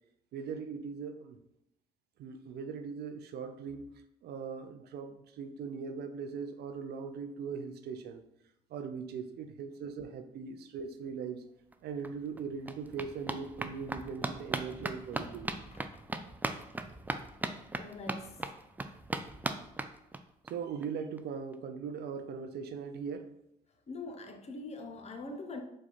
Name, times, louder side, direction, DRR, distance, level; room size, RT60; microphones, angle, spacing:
voice 1, 0.3-1.4 2.2-3.8 4.2-8.2 8.7-11.4 11.8-15.5 20.5-23.3, right 6 dB, 60° right, 0.5 m, -40 dB
sound 1, 11.7-11.8 12.0-20.5 20.8-20.9 21.2-21.3 21.5-21.6, right 2 dB, 10° right, 0.4 m, -39 dB
voice 2, 14.7-15.4 15.7-16.1 17.8-18.5 23.9-25.6, left 2 dB, 35° left, 0.8 m, -44 dB
4.7 x 2.3 x 4.2 m
hypercardioid pair, 60°, 18 cm